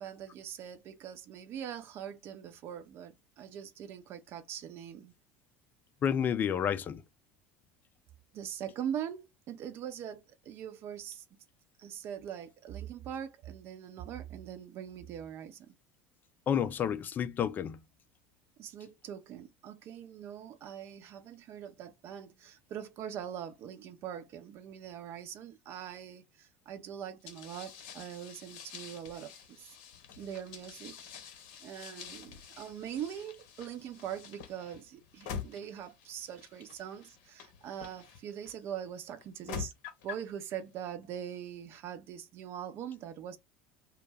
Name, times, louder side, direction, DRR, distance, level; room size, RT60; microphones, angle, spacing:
voice 1, 0.0-5.1 8.3-11.2 11.8-15.7 18.6-29.7 30.2-31.0 31.6-39.7 40.0-43.4, right 9 dB, 50° right, 0.5 m, -42 dB
voice 2, 6.0-7.0 16.5-17.8, left 8 dB, 35° left, 0.4 m, -30 dB
sound 1, 27.3-38.5 39.2-40.3, left 7 dB, 65° left, 0.7 m, -46 dB
2.2 x 2.0 x 3.3 m
hypercardioid pair, 70°, 5 cm